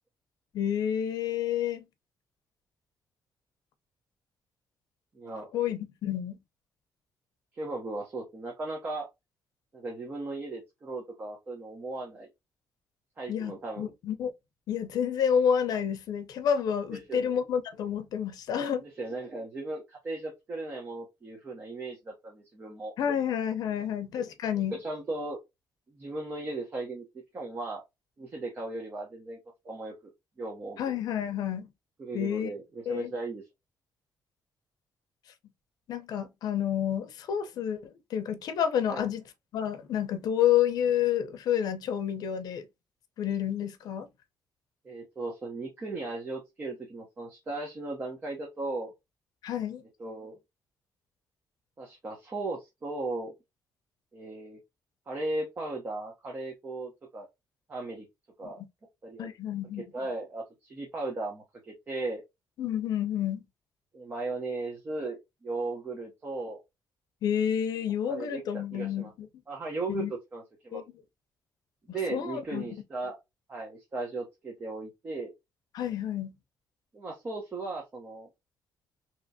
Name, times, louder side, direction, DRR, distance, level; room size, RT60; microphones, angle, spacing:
voice 1, 0.5-1.9 5.5-6.4 13.3-14.3 14.7-18.8 23.0-24.8 30.8-31.7 32.1-32.5 32.9-33.1 35.9-39.2 39.5-42.7 43.2-44.1 49.4-49.8 58.6-58.7 59.2-59.8 62.6-63.4 67.2-69.3 69.9-70.1 70.7-70.8 72.1-72.7 75.7-76.4, left 9 dB, 70° left, 0.6 m, -29 dB
voice 2, 5.1-5.5 7.6-9.1 9.7-12.3 13.2-13.9 16.9-17.4 18.8-22.9 24.7-25.4 25.9-27.1 27.3-27.8 28.2-29.4 29.6-30.1 30.4-30.8 32.0-33.4 38.9-39.1 44.8-48.9 50.0-50.4 51.8-53.3 54.1-54.6 55.1-57.3 57.7-58.0 58.4-58.6 59.0-59.3 59.9-62.2 63.9-66.6 68.1-69.1 69.5-70.8 71.9-73.2 73.5-75.3 76.9-78.3, right 2 dB, 30° right, 0.8 m, -37 dB
3.3 x 2.9 x 2.6 m
cardioid pair, 175°, 7 cm